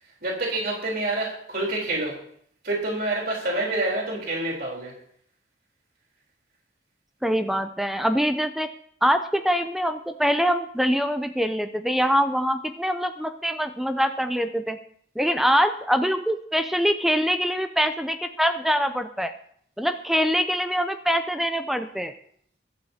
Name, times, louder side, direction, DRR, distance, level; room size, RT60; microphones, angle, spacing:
voice 1, 0.2-2.2 2.6-4.9, right 2 dB, 55° right, -2 dB, 3.7 m, -27 dB
voice 2, 7.2-8.7 9.0-14.8 15.2-19.3 19.8-22.1, equal, ahead, 8 dB, 0.5 m, -24 dB
22.5 x 12.0 x 2.8 m, 0.65 s
head